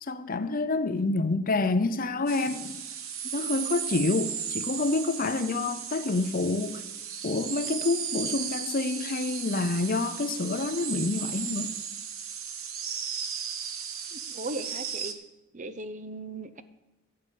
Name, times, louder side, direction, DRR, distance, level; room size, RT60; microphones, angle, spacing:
voice 1, 0.0-2.8 3.3-6.8 7.2-11.7, left 3 dB, 40° left, 0.6 m, -28 dB
sound 1, 2.3-15.1, right 8 dB, 65° right, 1.0 m, -35 dB
voice 2, 14.1-15.1 15.5-16.6, right 2 dB, 35° right, 0.6 m, -37 dB
11.5 x 6.8 x 8.6 m
head